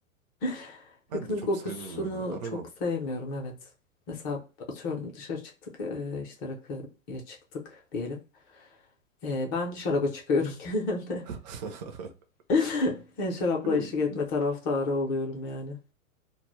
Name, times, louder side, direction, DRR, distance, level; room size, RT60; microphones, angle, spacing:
voice 1, 0.4-3.6 4.1-4.4 4.7-5.4 5.8-8.2 9.2-11.3 12.5-15.8, left 3 dB, 25° left, 0.5 m, -30 dB
voice 2, 1.1-2.7 11.3-12.1 12.6-12.7 13.6-14.2, right 5 dB, 35° right, 0.4 m, -39 dB
2.1 x 2.0 x 3.0 m
hypercardioid pair, 150°, 40 cm